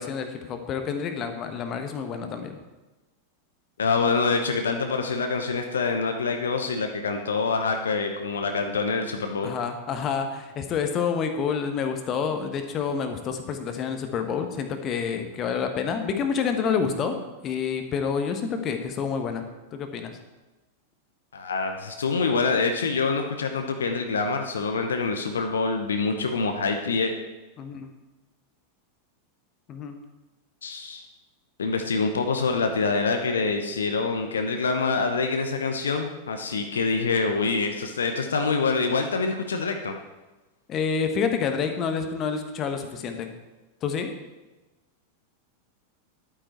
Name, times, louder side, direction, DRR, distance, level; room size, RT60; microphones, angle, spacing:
voice 1, 0.0-2.6 9.4-17.2 17.4-20.2 27.6-27.9 29.7-30.0 40.7-43.3 43.8-44.1, left 6 dB, 30° left, 6 dB, 1.2 m, -28 dB
voice 2, 3.8-9.5 21.3-27.1 30.6-31.0 31.6-39.9, left 4 dB, 70° left, 5 dB, 0.9 m, -26 dB
11.5 x 8.9 x 4.5 m, 1.1 s
figure-of-eight pair, 90°, 0 cm